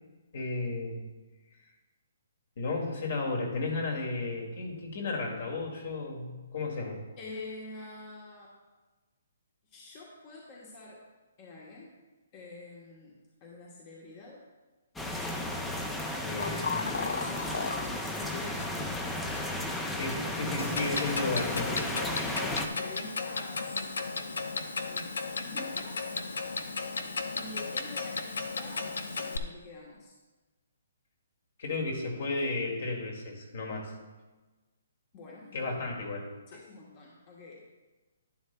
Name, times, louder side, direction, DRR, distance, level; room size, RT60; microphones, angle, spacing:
voice 1, 0.3-1.0 2.6-7.0 19.9-21.9 31.6-33.9 35.5-36.6, left 3 dB, 55° left, 0 dB, 2.2 m, -33 dB
voice 2, 7.2-8.5 9.7-11.0 11.4-11.9 12.3-14.4 16.2-19.2 19.8-20.1 22.1-23.9 24.9-26.1 27.3-30.1 35.1-35.6 36.5-37.6, left 3 dB, 30° left, -3 dB, 1.1 m, -46 dB
sound 1, 15.0-22.7, left 1 dB, 5° left, 0.5 m, -34 dB
sound 2, 16.4-17.9 18.6-18.7 19.3-19.4 20.1-20.2, left 5 dB, 75° left, 0.4 m, -34 dB
Clock, 20.6-29.4, left 4 dB, 90° left, 0.8 m, -35 dB
11.0 x 10.5 x 2.2 m, 1.2 s
hypercardioid pair, 165°, 0 cm